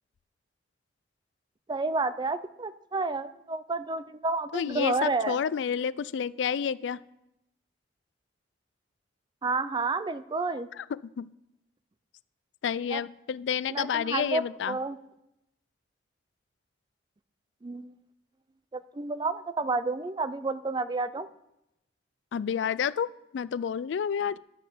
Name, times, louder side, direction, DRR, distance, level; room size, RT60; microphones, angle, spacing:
voice 1, 1.7-5.4 9.4-10.7 12.9-13.0 13.7-15.0 17.6-17.9 18.7-21.3, right 3 dB, 25° right, 14 dB, 0.4 m, -30 dB
voice 2, 4.5-7.0 10.8-11.3 12.6-14.8 22.3-24.4, left 7 dB, 85° left, 19 dB, 0.3 m, -30 dB
11.0 x 6.1 x 6.8 m, 0.85 s
head